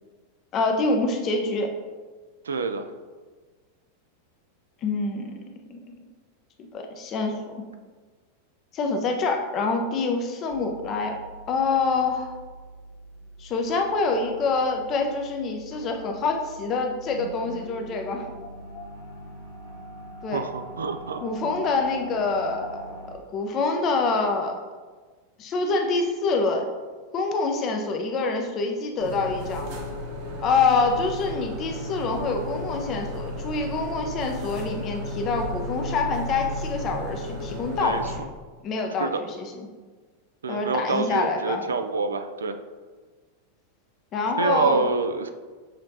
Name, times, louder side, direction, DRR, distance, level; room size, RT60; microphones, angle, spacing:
voice 1, 0.5-1.7 4.8-5.3 5.7-5.8 6.6-7.6 8.7-11.1 11.5-12.4 13.4-18.3 20.2-20.4 21.2-22.9 23.3-24.6 25.4-26.6 27.1-29.7 30.4-38.2 38.6-39.7 40.5-41.6 44.1-44.9, left 3 dB, 35° left, 4 dB, 0.6 m, -26 dB
voice 2, 2.4-2.9 20.3-21.2 37.8-38.0 39.0-39.2 40.4-42.6 44.4-45.3, right 4 dB, 70° right, 8 dB, 0.3 m, -26 dB
sound 1, 10.5-23.2, right 1 dB, 75° left, 0.9 m, -43 dB
sound 2, 29.0-38.2, left 1 dB, 50° right, 1.0 m, -33 dB
6.4 x 3.1 x 2.7 m, 1.4 s
figure-of-eight pair, 90°, 0 cm